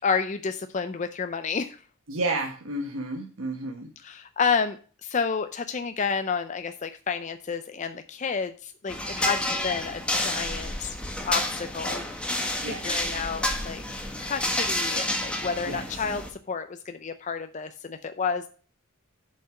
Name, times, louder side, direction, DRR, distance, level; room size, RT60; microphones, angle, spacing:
voice 1, 0.0-1.8 4.0-11.0 11.2-12.0 12.6-18.5, left 5 dB, 35° left, 9 dB, 0.5 m, -30 dB
voice 2, 2.1-3.9 12.6-13.2 15.6-16.0, right 2 dB, 80° right, 2 dB, 1.2 m, -32 dB
sound 1, 8.9-16.3, left 1 dB, 5° left, 1.2 m, -30 dB
7.4 x 5.4 x 5.7 m, 0.39 s
head